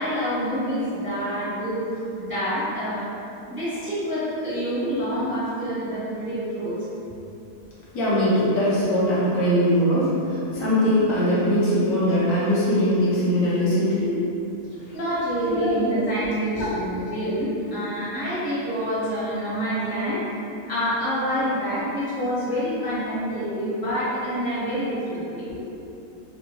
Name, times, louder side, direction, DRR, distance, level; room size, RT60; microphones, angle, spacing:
voice 1, 0.0-1.8 2.2-3.1 3.5-6.8 14.9-20.2 20.7-25.4, equal, 10° right, -13 dB, 0.6 m, -27 dB
voice 2, 7.9-14.1 14.8-15.0 15.5-16.0 16.5-16.7 25.5-25.6, equal, 65° left, -9 dB, 1.0 m, -21 dB
2.8 x 2.2 x 2.8 m, 2.7 s
omnidirectional pair, 1.6 m